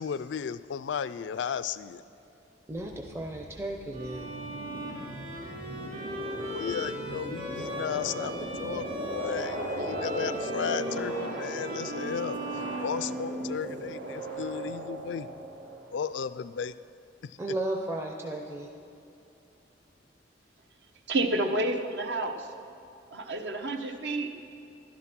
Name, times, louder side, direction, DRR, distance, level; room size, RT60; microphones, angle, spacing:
voice 1, 0.0-2.0 6.5-15.3 15.9-16.7 17.2-17.4, left 7 dB, 70° left, 14 dB, 0.3 m, -35 dB
voice 2, 2.7-4.3 17.4-18.7, right 1 dB, 15° right, 2 dB, 0.6 m, -34 dB
sound 1, 2.7-16.1, right 1 dB, 85° right, 1.6 m, -37 dB
Bowed string instrument, 3.9-13.6, equal, 50° right, 3.0 m, -39 dB
voice 3, 21.1-22.5 23.1-24.4, right 2 dB, 65° right, 5 dB, 1.0 m, -29 dB
12.0 x 11.0 x 6.0 m, 2.7 s
head